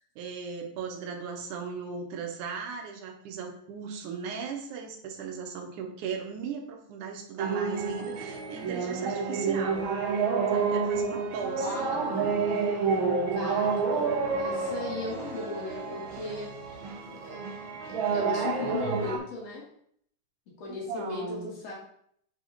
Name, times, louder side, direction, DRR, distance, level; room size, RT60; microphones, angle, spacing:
voice 1, 0.0-10.2 10.5-12.4 20.7-21.5, right 6 dB, 75° right, 2 dB, 2.6 m, -37 dB
sound 1, 7.4-19.2, right 5 dB, 60° right, 1.4 m, -29 dB
voice 2, 11.6-12.5 13.3-17.4 18.1-19.6 20.6-21.7, left 3 dB, 55° left, -4 dB, 3.3 m, -37 dB
8.5 x 4.8 x 3.9 m, 0.67 s
omnidirectional pair, 3.7 m